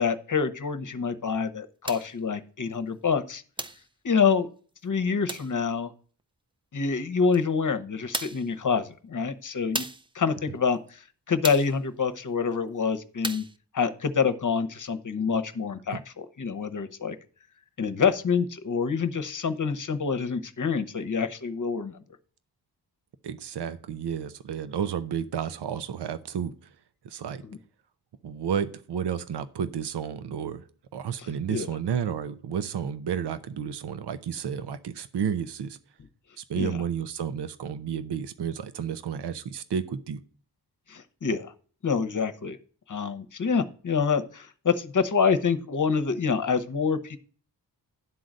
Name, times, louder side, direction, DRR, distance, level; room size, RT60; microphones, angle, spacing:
voice 1, 0.0-3.4 4.0-4.5 4.8-5.9 6.7-9.8 10.1-13.4 13.7-17.2 17.8-22.0 27.4-27.6 31.5-31.7 36.5-36.8 40.9-41.5 41.8-42.6 42.9-47.2, left 5 dB, 50° left, 9 dB, 0.9 m, -26 dB
sound 1, 1.9-2.2 3.6-3.9 5.3-5.6 7.3-7.4 8.1-8.5 9.7-10.1 11.4-11.8 13.2-13.6, right 2 dB, 15° right, 0.4 m, -34 dB
voice 2, 23.2-26.7 27.0-27.4 28.2-30.6 30.9-35.8 36.4-40.2, right 8 dB, 75° right, 12 dB, 0.7 m, -31 dB
11.0 x 3.9 x 7.4 m, 0.43 s
wide cardioid pair, 105°, 41 cm